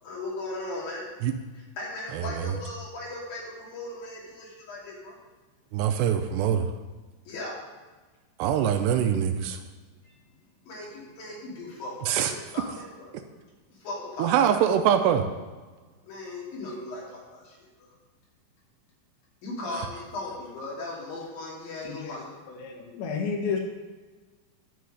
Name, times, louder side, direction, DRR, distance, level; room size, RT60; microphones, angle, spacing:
voice 1, 0.0-1.1 1.5-5.2 7.3-7.6 10.0-10.2 10.7-13.1 13.7-14.7 16.0-17.6 19.4-22.3, left 2 dB, 55° left, -4 dB, 4.0 m, -37 dB
voice 2, 2.1-2.5 5.7-6.7 8.4-9.6 12.1-12.3 14.2-15.3, right 9 dB, 80° right, 7 dB, 2.6 m, -23 dB
voice 3, 21.8-23.6, left 5 dB, 80° left, 1 dB, 3.7 m, -32 dB
10.0 x 6.0 x 7.8 m, 1.3 s
omnidirectional pair, 5.2 m